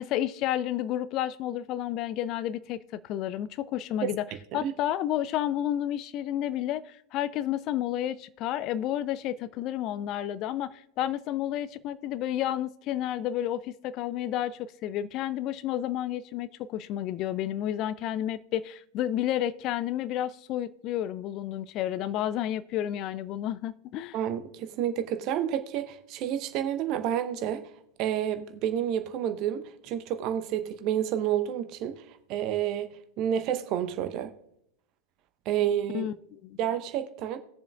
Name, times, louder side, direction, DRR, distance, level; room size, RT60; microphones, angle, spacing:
voice 1, 0.0-4.2 4.5-24.2 35.9-36.1 36.4-36.6, left 12 dB, 35° left, 0.3 m, -31 dB
voice 2, 24.1-27.6 28.0-32.0 32.3-34.3 35.5-36.1 36.6-37.4, right 10 dB, 40° right, 0.8 m, -29 dB
19.0 x 7.1 x 2.4 m
figure-of-eight pair, 90°, 0 cm